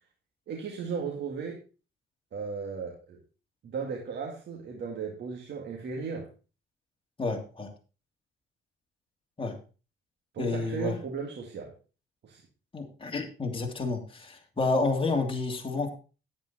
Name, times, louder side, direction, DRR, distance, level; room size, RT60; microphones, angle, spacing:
voice 1, 0.5-1.6 2.3-3.2 3.6-6.3 10.3-11.7 12.2-12.4, right 5 dB, 60° right, 0 dB, 2.2 m, -36 dB
voice 2, 7.2-7.7 9.4-9.6 10.4-10.9 12.7-15.9, left 3 dB, 25° left, 1 dB, 2.8 m, -30 dB
10.5 x 9.1 x 4.2 m, 0.34 s
cardioid pair, 90°, 20 cm